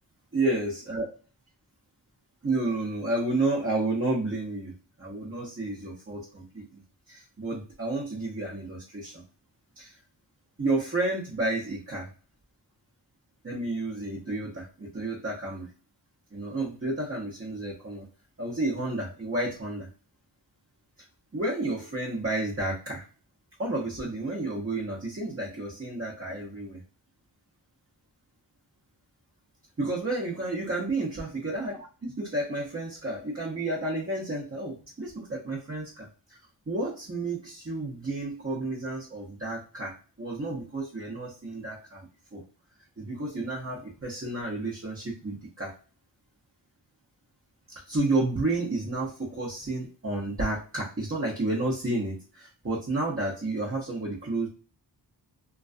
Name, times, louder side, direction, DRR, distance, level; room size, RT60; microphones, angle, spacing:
voice 1, 0.3-1.1 2.4-6.8 7.1-9.2 9.8-9.9 10.6-12.1 13.4-15.7 16.3-18.1 18.4-19.9 21.3-23.0 23.6-26.8 29.8-31.8 32.0-36.4 36.7-42.4 43.0-45.7 47.9-54.5, right 2 dB, 30° right, -4 dB, 0.8 m, -31 dB
2.3 x 2.2 x 2.4 m, 0.37 s
wide cardioid pair, 40°, 43 cm